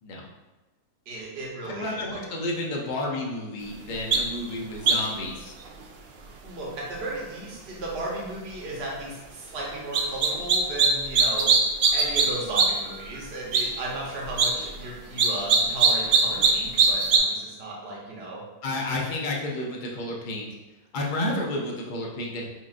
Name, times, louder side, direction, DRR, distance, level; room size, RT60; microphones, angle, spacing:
voice 1, 1.1-2.2 6.2-11.5 11.9-18.4, right 2 dB, 45° right, -4 dB, 1.1 m, -35 dB
voice 2, 1.6-5.5 18.6-20.5 20.9-22.5, left 1 dB, 60° left, -1 dB, 0.5 m, -31 dB
sound 1, 4.1-4.2 4.9-5.1 9.9-10.9 11.1-12.3 12.6-12.7 13.0-13.1 13.5-13.6 14.3-14.5 15.2-16.5 16.8-17.2, right 5 dB, 85° right, 0.5 m, -19 dB
5.6 x 2.5 x 2.5 m, 1.1 s
omnidirectional pair, 1.6 m